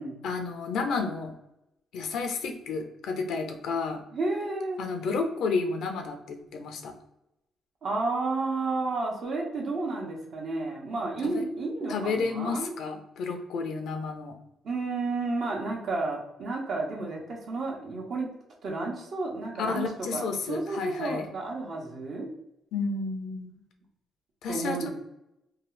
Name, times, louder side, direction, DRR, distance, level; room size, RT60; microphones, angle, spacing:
voice 1, 0.2-1.3 1.9-4.0 4.8-6.9 11.9-14.4 19.6-21.2 22.7-23.5 24.4-24.9, left 4 dB, 75° left, 5 dB, 0.6 m, -31 dB
voice 2, 4.1-4.9 7.8-12.8 14.6-18.3 18.6-22.3 24.5-24.9, right 3 dB, 60° right, -1 dB, 0.9 m, -31 dB
2.8 x 2.3 x 3.2 m, 0.86 s
cardioid pair, 90°, 0 cm